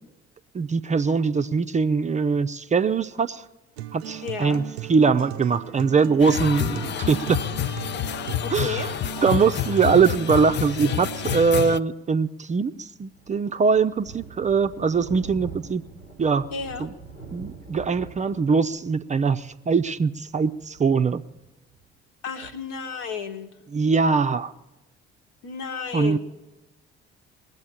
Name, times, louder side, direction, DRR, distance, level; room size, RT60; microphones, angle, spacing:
voice 1, 0.5-3.5 3.9-4.6 4.9-7.4 8.5-8.9 9.2-15.8 16.2-16.5 16.8-16.9 17.3-21.2 23.7-24.5 25.9-26.2, right 5 dB, 25° right, 9 dB, 0.5 m, -22 dB
Acoustic guitar, 3.8-11.7, right 13 dB, 75° right, 0.5 m, -37 dB
voice 2, 4.2-4.6 8.4-8.9 15.2-15.3 16.5-16.9 22.2-23.5 25.4-26.2, left 6 dB, 65° left, 6 dB, 1.3 m, -32 dB
sound 1, 6.2-11.8, left 12 dB, 35° left, 0.5 m, -29 dB
Thunder, 12.7-21.8, right 5 dB, 85° left, 1.8 m, -44 dB
20.0 x 7.9 x 8.9 m, 1.0 s
figure-of-eight pair, 45°, 32 cm